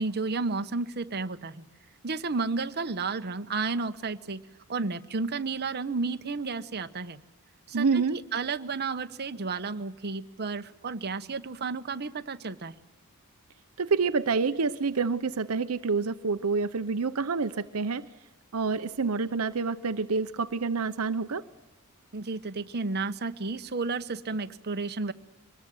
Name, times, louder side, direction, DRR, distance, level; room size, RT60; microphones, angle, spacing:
voice 1, 0.0-1.6 2.0-4.4 4.7-7.2 7.7-12.7 22.1-25.1, right 4 dB, 50° right, 8 dB, 1.0 m, -32 dB
voice 2, 7.7-8.2 13.8-18.1 18.5-21.4, right 4 dB, 70° right, 10 dB, 0.8 m, -27 dB
24.0 x 20.5 x 7.8 m, 1.0 s
head